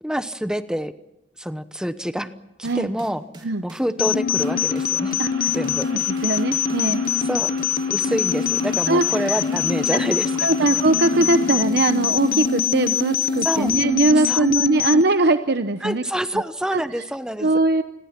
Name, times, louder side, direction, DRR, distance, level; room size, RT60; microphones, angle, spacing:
voice 1, 0.0-0.9 1.4-2.3 2.6-5.2 5.5-5.9 7.2-7.5 7.9-10.3 13.4-13.7 14.3-14.5 15.8-17.5, equal, 5° right, 11 dB, 1.0 m, -27 dB
sound 1, 2.6-13.9, right 1 dB, 25° right, 3.0 m, -39 dB
sound 2, 4.0-15.0, left 8 dB, 45° left, 0.8 m, -23 dB
sound 3, 4.3-11.6, right 4 dB, 80° right, 4.5 m, -40 dB
voice 2, 6.2-7.0 8.9-9.4 10.4-16.0 16.7-16.8 17.4-17.8, right 2 dB, 55° right, 9 dB, 0.9 m, -20 dB
29.0 x 21.0 x 5.9 m, 0.92 s
head